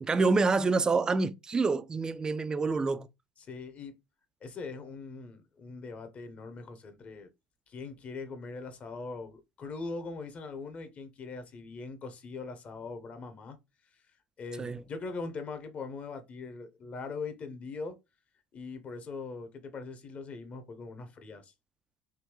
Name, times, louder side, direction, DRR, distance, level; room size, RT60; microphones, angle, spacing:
voice 1, 0.0-3.1 14.6-14.8, right 4 dB, 20° right, 0.3 m, -27 dB
voice 2, 3.4-3.9 4.4-7.3 7.7-13.6 14.4-18.0 18.5-21.5, left 4 dB, 40° left, 0.9 m, -41 dB
3.6 x 2.7 x 3.0 m
hypercardioid pair, 70°, 3 cm